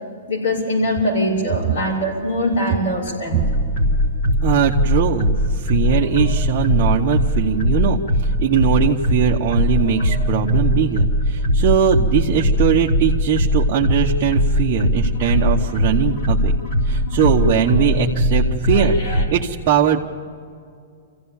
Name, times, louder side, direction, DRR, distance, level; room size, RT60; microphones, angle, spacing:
voice 1, 0.3-3.4, equal, 70° left, -4 dB, 6.2 m, -22 dB
sound 1, 3.4-19.3, equal, 45° left, 3.7 m, -20 dB
voice 2, 4.4-16.5 16.8-20.0, right 8 dB, 30° right, -4 dB, 1.1 m, -20 dB
26.0 x 16.0 x 7.2 m, 2.3 s
hypercardioid pair, 165°, 0 cm